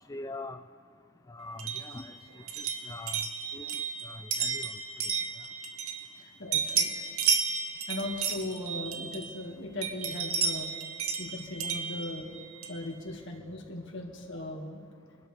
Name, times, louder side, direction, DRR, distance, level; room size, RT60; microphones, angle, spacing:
voice 1, 0.1-0.6 1.3-2.1 2.6-3.2 3.5-4.7, left 2 dB, 15° left, 7 dB, 0.3 m, -42 dB
sound 1, 1.6-6.2 6.5-9.4 9.8-12.9, right 6 dB, 85° right, 1.1 m, -32 dB
voice 2, 6.2-6.9 7.9-10.7 11.2-12.3 12.7-14.8, left 2 dB, 60° left, 1 dB, 2.0 m, -38 dB
26.5 x 12.0 x 3.4 m, 2.2 s
head